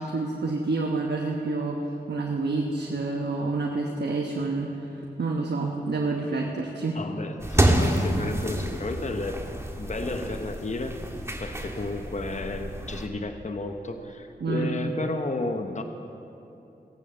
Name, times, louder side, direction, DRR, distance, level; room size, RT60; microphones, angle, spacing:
voice 1, 0.0-7.0 14.4-14.7, right 3 dB, 75° right, 1 dB, 1.1 m, -28 dB
voice 2, 6.9-9.4 9.8-11.0 11.4-15.8, left 2 dB, 45° left, 6 dB, 1.0 m, -32 dB
sound 1, 7.4-13.1, right 1 dB, 15° right, 1.7 m, -28 dB
18.0 x 8.5 x 6.6 m, 2.8 s
cardioid pair, 40°, 18 cm